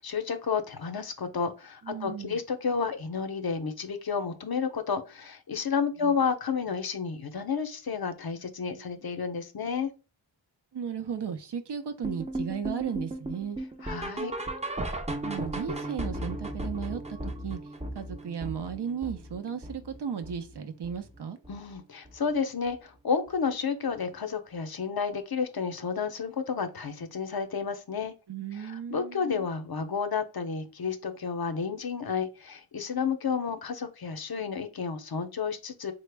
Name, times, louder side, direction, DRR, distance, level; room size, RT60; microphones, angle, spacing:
voice 1, 0.0-9.9 13.8-14.3 21.5-28.1 28.9-35.9, left 6 dB, 50° left, 0.7 m, -31 dB
voice 2, 1.8-2.4 6.0-6.1 8.7-8.9 10.7-13.6 15.2-17.6 17.9-21.4 28.3-29.5, right 7 dB, 60° right, 0.6 m, -35 dB
sound 1, 12.0-21.2 21.4-21.8 22.1-22.2 22.7-22.8 23.3-23.4, right 1 dB, 15° right, 0.5 m, -36 dB
3.9 x 2.1 x 3.3 m
cardioid pair, 50°, 47 cm